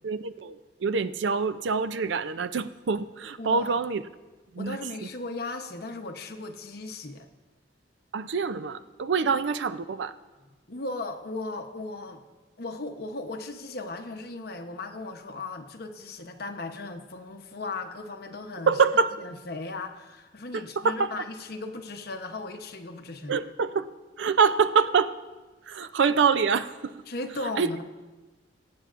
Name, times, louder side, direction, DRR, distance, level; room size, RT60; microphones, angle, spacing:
voice 1, 0.0-4.0 4.5-4.8 8.1-10.1 18.7-19.1 20.5-21.1 23.3-23.9 24.2-25.1 25.7-26.9 27.6-27.7, right 5 dB, 75° right, 0.5 m, -25 dB
voice 2, 3.4-3.8 4.6-7.3 9.3-9.4 10.7-12.2 12.6-18.8 19.2-23.4 27.1-27.8, left 2 dB, 55° left, 0.9 m, -37 dB
23.0 x 8.6 x 2.5 m
head